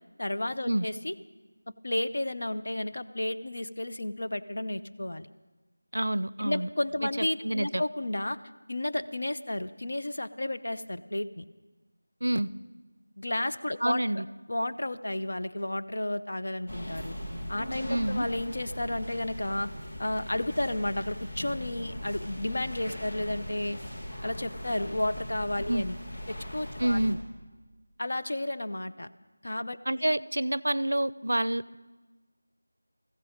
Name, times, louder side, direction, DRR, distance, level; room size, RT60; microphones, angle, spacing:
voice 1, 0.2-1.1 1.8-5.3 6.4-8.4 8.7-11.4 13.2-14.2 14.5-17.2 17.5-19.7 20.0-23.8 24.2-26.0 26.3-27.2 28.0-29.1 29.4-30.1, left 1 dB, 60° left, 9 dB, 0.6 m, -32 dB
voice 2, 5.9-6.7 7.2-7.8 12.2-12.5 13.8-14.2 17.9-18.3 25.7-25.8 26.8-27.2 29.9-31.8, right 1 dB, 85° right, 20 dB, 0.4 m, -28 dB
sound 1, 16.7-27.1, equal, 35° left, 1.7 m, -40 dB
16.0 x 14.5 x 5.1 m, 1.2 s
figure-of-eight pair, 175°, 0 cm